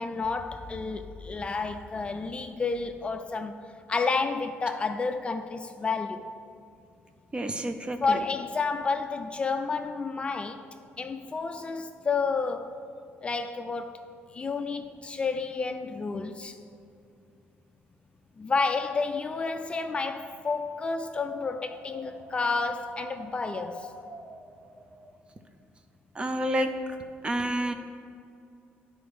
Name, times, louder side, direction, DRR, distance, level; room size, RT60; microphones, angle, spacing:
voice 1, 0.0-3.5 3.9-6.3 8.0-10.7 11.0-12.8 13.2-14.0 14.3-16.6 18.4-23.9, left 4 dB, 25° left, 0.4 m, -30 dB
voice 2, 7.3-8.2 26.1-26.7 27.2-27.7, right 1 dB, 25° right, 0.5 m, -29 dB
Wind, 19.1-25.1, right 1 dB, 55° right, 0.9 m, -46 dB
9.8 x 4.3 x 5.0 m
cardioid pair, 110°, 4 cm